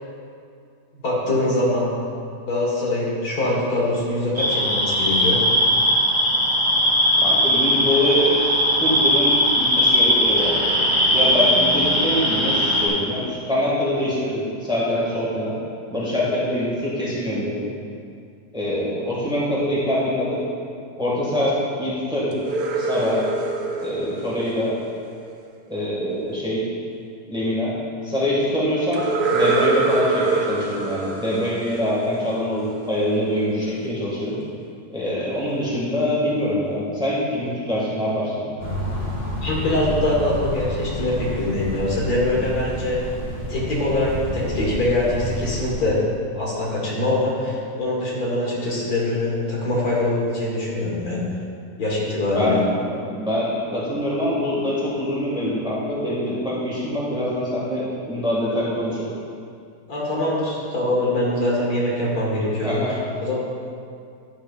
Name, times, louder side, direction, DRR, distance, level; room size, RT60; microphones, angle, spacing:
voice 1, 1.0-1.9 2.5-5.4 39.4-43.0 43.5-46.0 46.4-51.3 51.8-52.6 59.9-63.3, left 1 dB, 75° left, -5 dB, 2.0 m, -23 dB
sound 1, 4.4-12.9, equal, 20° right, 0.9 m, -19 dB
voice 2, 7.2-8.3 8.8-10.5 11.1-15.5 15.9-17.6 18.5-20.4 21.0-22.3 22.8-23.2 23.8-24.7 25.7-26.6 27.3-27.7 28.0-29.0 29.3-34.3 34.9-38.4 52.3-59.1 62.6-62.9, left 1 dB, 5° right, -7 dB, 1.6 m, -24 dB
sound 2, 22.3-25.3 28.9-32.6, right 4 dB, 90° right, 1.3 m, -25 dB
sound 3, 38.6-45.7, equal, 40° left, 1.5 m, -29 dB
10.0 x 7.7 x 2.4 m, 2.4 s
omnidirectional pair, 1.6 m